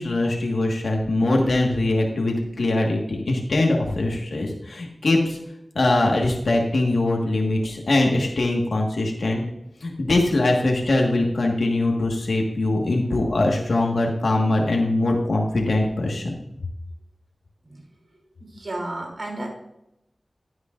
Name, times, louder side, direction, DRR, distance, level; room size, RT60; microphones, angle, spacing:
voice 1, 0.0-5.4 5.7-9.4 9.8-16.3, left 2 dB, 85° left, 0 dB, 1.5 m, -22 dB
voice 2, 18.4-19.5, right 1 dB, 65° right, 1 dB, 3.0 m, -32 dB
11.0 x 9.5 x 2.5 m, 0.83 s
wide cardioid pair, 55°, 0 cm